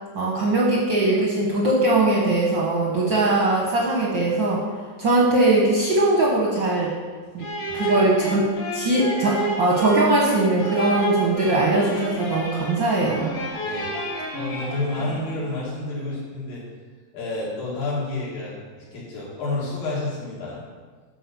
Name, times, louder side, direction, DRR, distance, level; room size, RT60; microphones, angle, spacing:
voice 1, 0.1-4.6 5.0-6.9 7.3-7.5 7.7-8.4 8.7-13.3, right 2 dB, 70° right, -3 dB, 1.1 m, -20 dB
voice 2, 7.3-7.9 13.6-16.6 17.1-20.6, left 2 dB, 85° left, -7 dB, 4.6 m, -30 dB
sound 1, 7.4-15.4, right 2 dB, 70° left, 3.6 m, -30 dB
11.0 x 4.6 x 6.9 m, 1.5 s
omnidirectional pair, 3.9 m